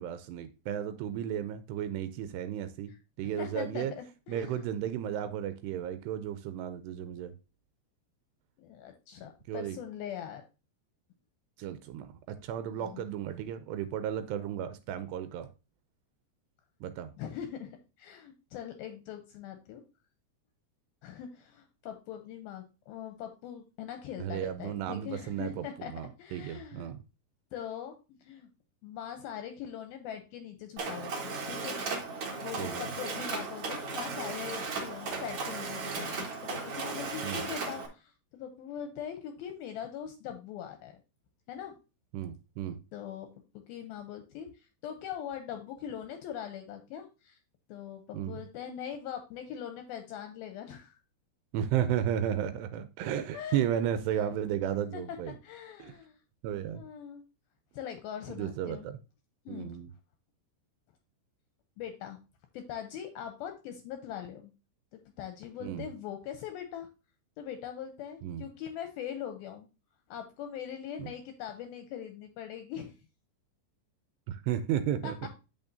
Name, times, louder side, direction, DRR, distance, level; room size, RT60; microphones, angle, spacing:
voice 1, 0.0-3.9 4.3-7.3 9.5-9.8 11.6-15.5 16.8-17.1 24.2-27.0 32.6-32.9 37.2-37.4 42.1-42.8 48.1-48.4 51.5-55.3 55.8-55.9 56.4-56.8 58.3-59.0 59.5-59.9 65.6-65.9 68.2-68.5 71.0-71.1 74.3-75.3, right 10 dB, 85° right, 11 dB, 2.6 m, -34 dB
voice 2, 3.2-4.7 8.6-10.4 12.7-13.0 17.2-19.8 21.0-25.9 26.2-26.9 27.5-28.5 28.8-32.1 32.4-41.0 41.5-41.7 42.9-43.3 43.5-47.4 47.7-51.0 53.3-53.6 54.9-56.2 56.7-57.2 57.7-58.9 59.5-59.7 61.8-62.2 62.5-64.5 65.2-66.9 67.4-69.7 70.1-73.0 75.0-75.1, left 9 dB, 75° left, 6 dB, 2.3 m, -41 dB
Mechanisms, 30.8-37.9, right 4 dB, 60° right, 1.5 m, -36 dB
8.3 x 7.0 x 2.7 m, 0.30 s
omnidirectional pair, 4.9 m